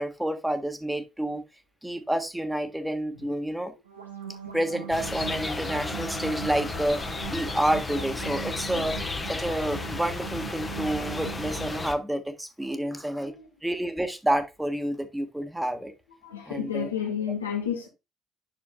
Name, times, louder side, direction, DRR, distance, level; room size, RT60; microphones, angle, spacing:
voice 1, 0.0-1.4 1.8-3.7 4.5-7.0 7.3-9.0 9.3-13.3 13.6-15.9 16.5-16.9, right 1 dB, 5° right, 1.5 m, -29 dB
sound 1, 3.8-11.8, right 7 dB, 90° right, 1.0 m, -40 dB
sound 2, 4.9-12.0, left 3 dB, 25° left, 1.2 m, -34 dB
voice 2, 16.2-17.9, left 8 dB, 90° left, 1.4 m, -31 dB
8.0 x 6.1 x 2.3 m
figure-of-eight pair, 50°, 0 cm